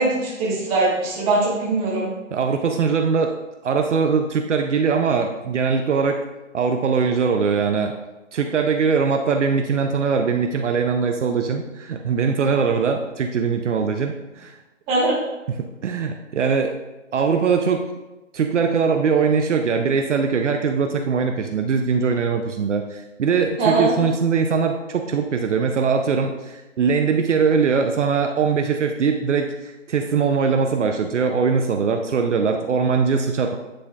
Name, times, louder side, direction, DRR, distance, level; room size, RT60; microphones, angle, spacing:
voice 1, 0.0-2.1 14.9-15.2 23.6-23.9, right 2 dB, 15° right, -6 dB, 1.4 m, -21 dB
voice 2, 2.3-3.3 3.6-6.2 6.5-7.9 8.3-14.6 15.5-16.7 17.1-17.9 18.3-33.6, right 5 dB, 65° right, 4 dB, 0.6 m, -21 dB
10.0 x 4.2 x 2.4 m, 1.1 s
hypercardioid pair, 150°, 39 cm